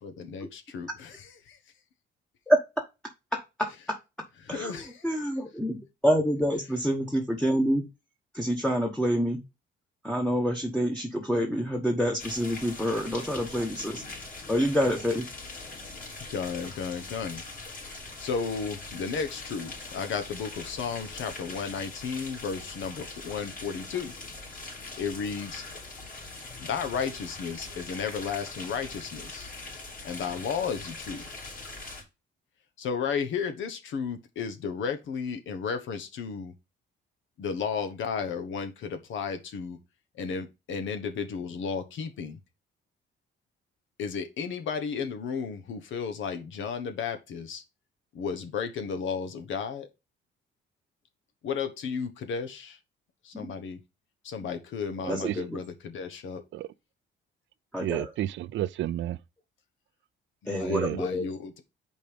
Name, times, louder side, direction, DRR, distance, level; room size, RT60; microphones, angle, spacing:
voice 1, 0.0-1.6 4.4-5.1 16.3-17.4 17.8-24.1 25.0-25.6 26.6-29.5 30.0-31.2 32.8-36.5 37.4-39.8 40.1-42.4 44.0-47.6 48.1-49.9 51.4-52.8 53.2-53.8 54.2-56.4 60.5-61.6, left 6 dB, 75° left, 1.1 m, -33 dB
voice 2, 2.5-2.8 3.3-4.0 4.5-4.8 5.0-7.9 8.3-9.4 10.0-14.0 14.5-15.3 53.3-53.5 55.1-55.6 57.7-58.1 60.5-61.3, equal, 5° left, 1.1 m, -27 dB
sound 1, 12.2-32.0, left 3 dB, 45° left, 3.2 m, -42 dB
voice 3, 55.0-55.4 56.5-56.7 57.8-59.2 60.7-61.0, right 13 dB, 70° right, 0.5 m, -31 dB
5.3 x 4.6 x 5.1 m
cardioid pair, 90°, 20 cm